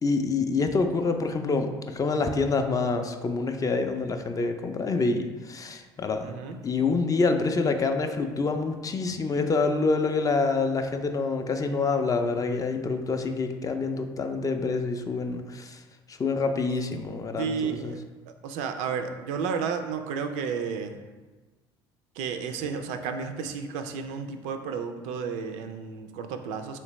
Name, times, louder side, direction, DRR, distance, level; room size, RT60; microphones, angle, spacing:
voice 1, 0.0-6.3 6.6-15.8 16.1-17.9, left 4 dB, 25° left, 6 dB, 0.4 m, -27 dB
voice 2, 6.2-6.6 17.4-18.0 18.3-21.0 22.1-26.8, right 6 dB, 70° right, 7 dB, 0.4 m, -32 dB
3.3 x 3.2 x 3.0 m, 1.3 s
hypercardioid pair, 70°, 13 cm